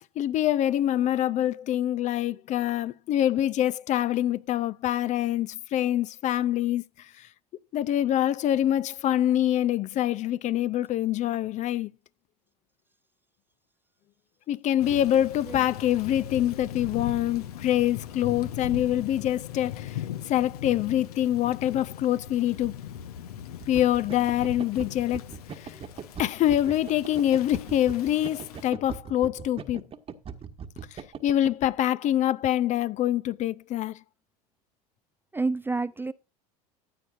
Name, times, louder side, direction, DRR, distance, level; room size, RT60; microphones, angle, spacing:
voice 1, 0.0-6.8 7.2-7.3 7.7-11.9 14.5-22.8 23.7-25.8 26.2-29.8 30.9-34.0, left 12 dB, 35° left, 0.6 m, -25 dB
Thunder / Rain, 14.8-28.7, left 9 dB, 75° left, 1.0 m, -39 dB
sound 1, 23.6-31.7, right 7 dB, 30° right, 1.3 m, -40 dB
voice 2, 35.3-36.1, right 3 dB, 10° right, 0.5 m, -29 dB
15.0 x 9.1 x 2.5 m
hypercardioid pair, 80°, 20 cm